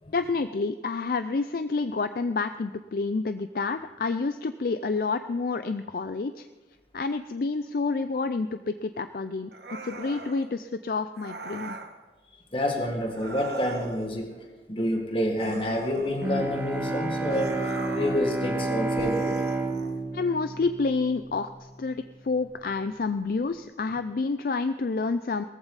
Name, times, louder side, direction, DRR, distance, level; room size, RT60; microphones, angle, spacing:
voice 1, 0.1-6.5 6.9-9.5 9.8-11.8 20.1-25.4, left 4 dB, 55° left, 10 dB, 0.4 m, -29 dB
sound 1, 9.5-10.4 11.2-11.9 13.1-14.1 15.4-16.5 17.3-18.2 19.0-20.0, right 2 dB, 70° right, 1.3 m, -40 dB
voice 2, 12.5-19.4, left 1 dB, 30° left, 3 dB, 1.9 m, -28 dB
Bowed string instrument, 16.2-21.5, right 2 dB, 10° right, 1.7 m, -30 dB
18.5 x 14.5 x 4.1 m, 1.2 s
head